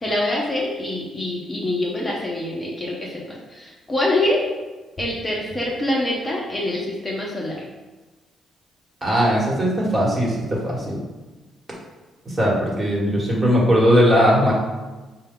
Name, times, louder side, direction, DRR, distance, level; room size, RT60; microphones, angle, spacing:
voice 1, 0.0-3.1 3.5-4.4 5.0-7.6, left 1 dB, 20° left, -4 dB, 0.7 m, -25 dB
voice 2, 9.0-11.0 12.2-14.5, equal, 25° right, -4 dB, 1.3 m, -19 dB
4.5 x 2.2 x 3.6 m, 1.2 s
cardioid pair, 90°, 0 cm